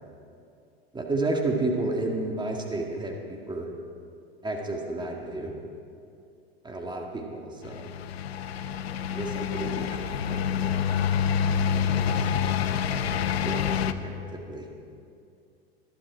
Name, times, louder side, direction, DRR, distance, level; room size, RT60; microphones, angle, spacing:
voice 1, 0.9-3.7 4.4-5.5 6.6-7.9 9.1-11.1 11.6-12.3 13.4-14.7, right 2 dB, 15° right, 0 dB, 1.8 m, -32 dB
sound 1, 7.6-13.9, left 8 dB, 75° left, 0.7 m, -27 dB
20.0 x 12.0 x 4.8 m, 2.5 s
hypercardioid pair, 85°, 31 cm